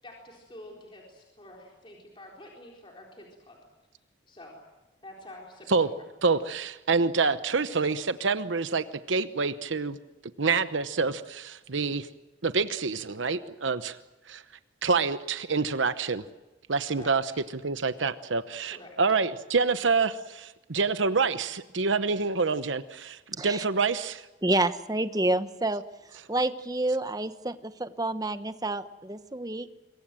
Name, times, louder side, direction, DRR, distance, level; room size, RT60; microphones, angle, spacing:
voice 1, 0.0-3.6 4.3-4.6 5.0-6.0 16.9-17.4 18.7-19.2, left 1 dB, 25° left, -1 dB, 4.2 m, -48 dB
voice 2, 6.2-10.0 10.4-12.1 12.4-14.0 14.3-14.4 14.8-16.2 16.7-17.3 17.6-24.3, right 4 dB, 80° right, 12 dB, 1.0 m, -27 dB
voice 3, 24.4-25.8 26.3-29.7, right 2 dB, 20° right, 11 dB, 1.0 m, -28 dB
26.0 x 23.0 x 7.7 m, 1.1 s
head